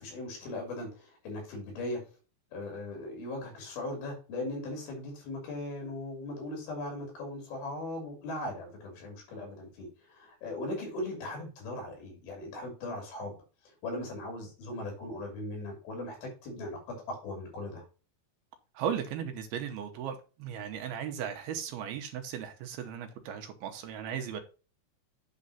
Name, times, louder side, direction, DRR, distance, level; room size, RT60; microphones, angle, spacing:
voice 1, 0.0-2.0 2.5-13.3 13.8-17.8, left 1 dB, 70° left, 4.7 m, -39 dB
voice 2, 18.7-24.4, right 8 dB, 80° right, 2.8 m, -36 dB
8.4 x 3.9 x 5.5 m
omnidirectional pair, 4.6 m